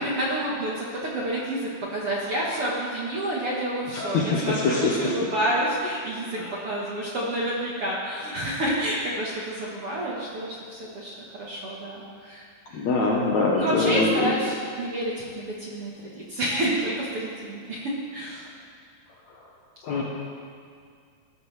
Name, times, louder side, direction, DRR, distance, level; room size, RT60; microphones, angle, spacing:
voice 1, 0.0-12.9 13.5-18.5, right 1 dB, 50° right, -5 dB, 1.8 m, -29 dB
voice 2, 3.9-5.1 6.4-6.6 12.7-14.3 19.8-20.0, left 3 dB, 65° left, -3 dB, 2.0 m, -24 dB
19.0 x 13.0 x 3.4 m, 2.1 s
omnidirectional pair, 4.5 m